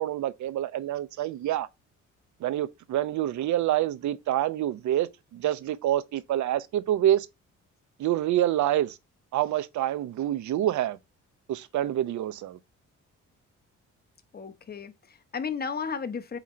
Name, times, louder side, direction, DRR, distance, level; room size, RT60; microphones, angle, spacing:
voice 1, 0.0-1.7 2.4-7.3 8.0-9.0 9.3-11.0 11.5-12.6, right 12 dB, 75° right, 0.8 m, -27 dB
voice 2, 14.3-16.4, left 6 dB, 30° left, 0.9 m, -34 dB
7.9 x 3.1 x 4.2 m
cardioid pair, 90°, 30 cm